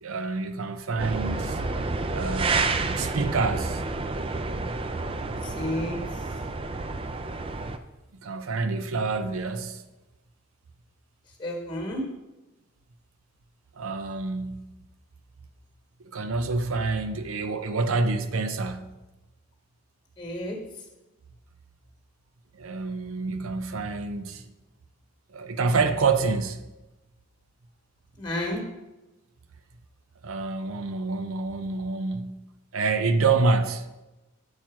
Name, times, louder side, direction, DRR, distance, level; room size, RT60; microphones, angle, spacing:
voice 1, 0.0-1.6 2.1-3.8 8.2-9.8 13.8-14.7 16.1-19.0 22.5-24.4 25.3-26.6 30.2-32.4 32.7-33.9, right 4 dB, 85° right, 0.6 m, -27 dB
sound 1, 1.0-7.8, right 3 dB, 25° right, 0.4 m, -29 dB
voice 2, 5.4-6.0 11.4-12.0 20.2-20.6 28.2-28.6, left 1 dB, 20° left, 1.5 m, -31 dB
8.7 x 4.4 x 5.9 m
head